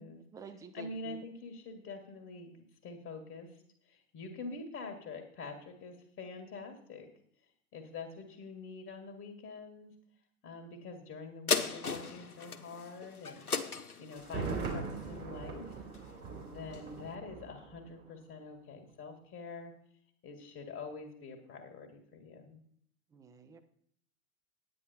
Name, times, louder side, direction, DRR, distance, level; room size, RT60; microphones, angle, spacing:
voice 1, 0.0-1.2 23.1-23.6, right 4 dB, 10° right, 7 dB, 0.4 m, -50 dB
voice 2, 0.7-2.5 2.8-7.1 7.7-9.9 10.4-13.7 14.0-15.8 16.4-19.7 20.2-22.6, left 3 dB, 25° left, 3 dB, 1.8 m, -46 dB
sound 1, 11.5-16.2 16.7-16.8, left 5 dB, 85° left, 0.9 m, -37 dB
Thunder, 14.2-18.1 18.4-18.5, right 4 dB, 25° right, 3.3 m, -41 dB
9.8 x 9.4 x 4.3 m, 0.67 s
figure-of-eight pair, 95°, 44 cm